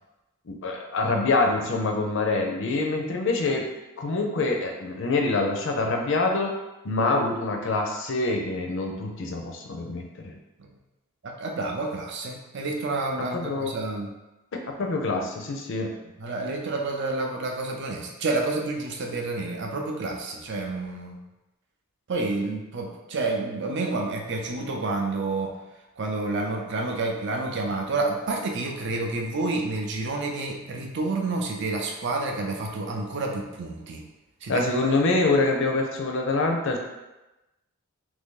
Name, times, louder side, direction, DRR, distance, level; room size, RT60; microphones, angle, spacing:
voice 1, 0.5-3.7 4.0-6.5 6.8-10.3 13.3-13.8 14.5-15.9 34.5-36.8, left 3 dB, 55° left, 2 dB, 0.5 m, -25 dB
voice 2, 11.2-14.1 16.2-21.2 22.1-25.6 26.0-34.0 34.4-34.9, right 3 dB, 50° right, 1 dB, 0.5 m, -29 dB
3.0 x 2.7 x 3.7 m, 1.0 s
head